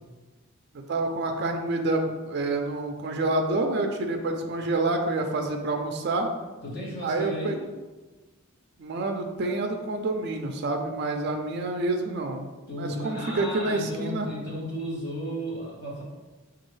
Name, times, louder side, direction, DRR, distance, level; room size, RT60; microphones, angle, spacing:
voice 1, 0.9-6.3 7.0-7.6 8.8-12.5 12.8-14.3, right 2 dB, 50° right, 3 dB, 0.4 m, -28 dB
voice 2, 6.6-7.6 12.7-16.0, equal, 45° left, -5 dB, 1.2 m, -34 dB
5.2 x 2.3 x 3.1 m, 1.2 s
head